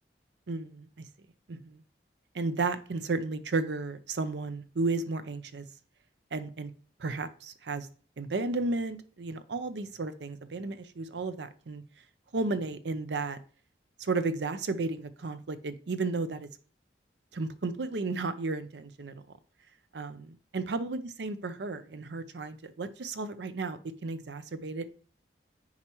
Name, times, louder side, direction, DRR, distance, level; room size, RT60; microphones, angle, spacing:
voice 1, 0.5-1.1 1.5-1.8 2.3-5.6 6.3-6.7 7.0-7.9 8.2-11.8 12.3-13.4 14.0-16.5 17.3-19.2 19.9-24.9, right 3 dB, 75° right, 12 dB, 0.6 m, -33 dB
9.6 x 4.3 x 3.0 m, 0.42 s
head